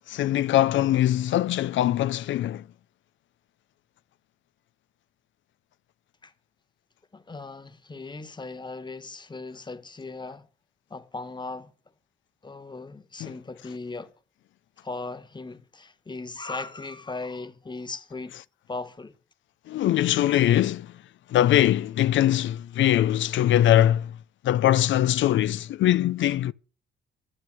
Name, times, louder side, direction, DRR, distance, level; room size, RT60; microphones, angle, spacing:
voice 1, 0.1-2.6 13.2-13.3 19.7-20.9 21.3-24.1 24.4-26.5, left 12 dB, 70° left, 0.6 m, -22 dB
voice 2, 7.1-10.5 10.9-11.7 12.4-14.1 14.8-18.3 18.7-19.1, left 3 dB, 20° left, 1.6 m, -38 dB
11.5 x 10.0 x 7.8 m
cardioid pair, 90°, 20 cm